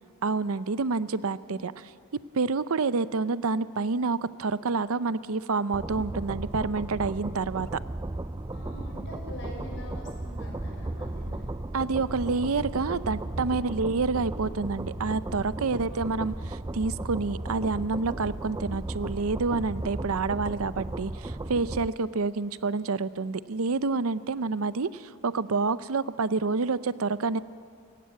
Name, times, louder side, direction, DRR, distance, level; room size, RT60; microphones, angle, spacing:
voice 1, 0.2-1.7 2.3-7.7 11.7-27.4, right 4 dB, 75° right, 15 dB, 0.6 m, -28 dB
sound 1, 5.7-21.9, right 2 dB, 15° right, 0.5 m, -35 dB
voice 2, 8.5-11.4 13.4-13.8 15.6-16.0, left 1 dB, 55° left, 0 dB, 6.3 m, -45 dB
28.0 x 16.0 x 8.4 m, 2.2 s
head